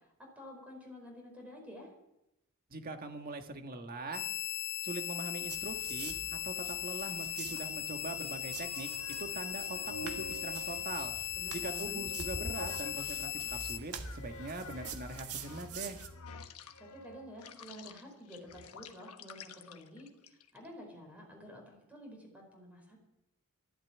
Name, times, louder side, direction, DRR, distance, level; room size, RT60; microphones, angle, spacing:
voice 1, 0.4-1.9 11.3-12.1 16.8-23.0, equal, 5° right, 1 dB, 4.7 m, -50 dB
voice 2, 2.7-4.3 4.8-11.1 11.5-16.0, right 2 dB, 40° right, 5 dB, 1.7 m, -42 dB
sound 1, 4.1-13.8, left 11 dB, 30° left, 1.0 m, -38 dB
sound 2, 5.4-16.1, right 6 dB, 80° right, 1.7 m, -47 dB
sound 3, 8.5-13.5 14.0-20.7, left 1 dB, 85° left, 1.3 m, -48 dB
13.0 x 12.0 x 8.7 m, 0.87 s
head